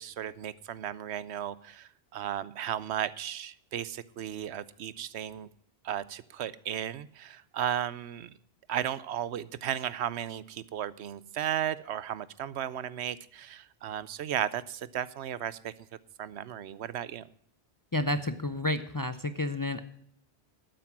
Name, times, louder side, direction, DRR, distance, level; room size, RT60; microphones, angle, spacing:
voice 1, 0.0-5.5 5.8-8.3 8.7-15.7 16.2-17.2, right 10 dB, 80° right, 18 dB, 0.9 m, -35 dB
voice 2, 17.9-19.8, left 1 dB, 25° left, 11 dB, 0.5 m, -30 dB
12.0 x 9.4 x 6.0 m, 0.67 s
omnidirectional pair, 1.1 m